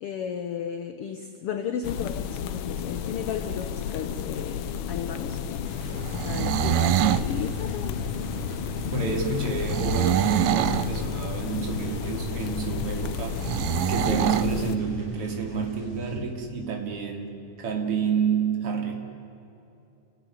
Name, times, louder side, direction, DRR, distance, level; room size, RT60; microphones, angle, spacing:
voice 1, 0.0-5.4 6.2-8.1, left 7 dB, 65° left, 8 dB, 1.6 m, -34 dB
sound 1, 1.8-14.8, left 8 dB, 80° left, 1.1 m, -32 dB
sound 2, 5.6-16.2, left 1 dB, 45° left, 8.9 m, -37 dB
snoring sounds, 6.0-7.3 9.6-10.9 13.4-14.5, right 12 dB, 85° right, 2.2 m, -24 dB
voice 2, 8.9-13.6 13.9-18.9, right 5 dB, 50° right, 2 dB, 3.7 m, -29 dB
29.5 x 17.0 x 9.9 m, 2.9 s
omnidirectional pair, 3.5 m